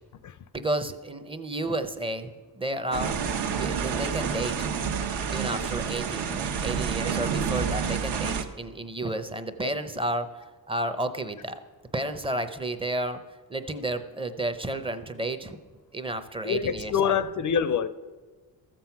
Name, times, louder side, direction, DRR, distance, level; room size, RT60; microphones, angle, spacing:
voice 1, 0.5-3.2 3.5-4.6 5.3-11.6 11.9-13.2 13.5-15.6 15.9-17.1, right 1 dB, 15° right, 0.6 m, -32 dB
sound 1, 2.9-8.4, right 6 dB, 65° right, 1.1 m, -29 dB
voice 2, 16.4-17.9, left 7 dB, 45° left, 0.5 m, -26 dB
14.0 x 7.6 x 5.8 m
cardioid pair, 160°, 43 cm